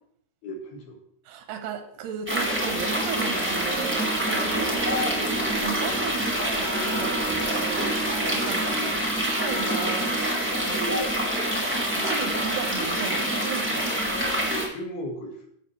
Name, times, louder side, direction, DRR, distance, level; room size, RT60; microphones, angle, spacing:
voice 1, 0.4-1.0 8.7-9.1 14.5-15.5, equal, 75° left, 1 dB, 3.7 m, -36 dB
voice 2, 1.3-7.9 8.3-8.7 9.2-10.3 10.6-11.5 11.9-14.0, right 6 dB, 85° right, 7 dB, 3.1 m, -35 dB
sound 1, 2.3-14.6, right 1 dB, 5° right, 0.9 m, -26 dB
14.5 x 5.8 x 3.3 m, 0.67 s
omnidirectional pair, 4.6 m